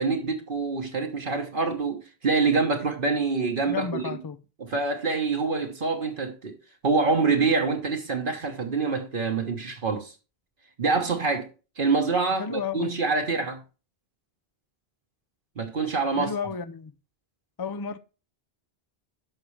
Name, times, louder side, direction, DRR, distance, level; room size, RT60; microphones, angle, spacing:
voice 1, 0.0-4.0 4.6-6.6 6.8-10.1 10.8-11.5 11.8-13.6 15.6-16.3, right 4 dB, 55° right, 1.3 m, -26 dB
voice 2, 3.7-4.4 12.4-12.9 16.1-16.9 17.6-18.0, left 6 dB, 30° left, 0.4 m, -32 dB
10.5 x 6.1 x 3.2 m
omnidirectional pair, 1.1 m